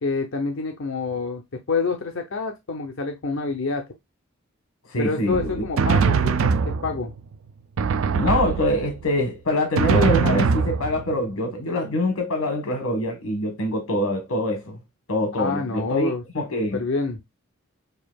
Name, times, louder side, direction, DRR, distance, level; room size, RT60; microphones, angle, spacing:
voice 1, 0.0-1.4 1.7-3.8 5.0-7.1 15.4-16.2 16.7-17.2, left 4 dB, 65° left, 0.7 m, -27 dB
voice 2, 4.9-5.6 8.1-14.8 15.1-16.8, left 1 dB, 80° left, 1.1 m, -24 dB
Drum, 5.3-7.2 7.8-9.1 9.8-11.3, right 5 dB, 70° right, 0.4 m, -22 dB
6.5 x 2.7 x 2.3 m
head